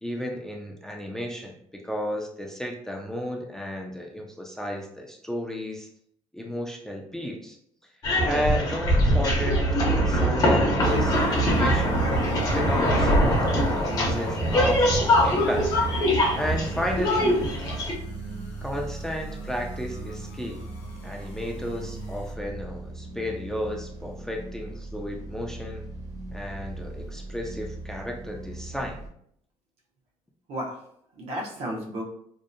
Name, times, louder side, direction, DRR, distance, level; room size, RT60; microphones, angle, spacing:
voice 1, 0.0-5.9 6.3-7.6 8.2-12.0 12.5-15.7 16.3-17.4 18.6-20.6 21.0-25.8 26.3-29.0, equal, 5° left, 0 dB, 0.3 m, -33 dB
sound 1, 8.0-17.9, equal, 35° left, 0.6 m, -22 dB
sound 2, 10.8-22.3, right 4 dB, 70° left, 0.7 m, -41 dB
sound 3, 14.5-29.1, right 2 dB, 30° right, 0.7 m, -39 dB
voice 2, 30.5-32.0, equal, 70° right, -1 dB, 0.7 m, -34 dB
2.6 x 2.0 x 2.5 m, 0.69 s
cardioid pair, 125°, 11 cm